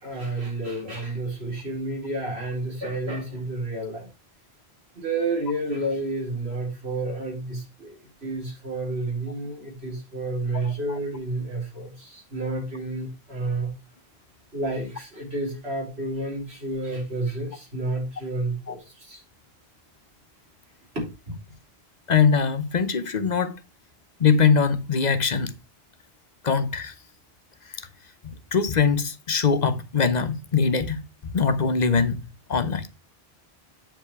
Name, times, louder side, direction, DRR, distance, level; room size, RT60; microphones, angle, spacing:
voice 1, 0.0-4.1 4.9-13.7 14.5-19.2 20.9-21.6, right 2 dB, 90° right, 4.3 m, -30 dB
voice 2, 10.5-11.0 18.7-18.8 22.1-23.6 24.2-25.5 26.4-26.9 27.7-27.8 28.2-32.2 32.5-32.9, left 5 dB, 45° left, 0.9 m, -22 dB
8.8 x 5.4 x 4.7 m
omnidirectional pair, 1.0 m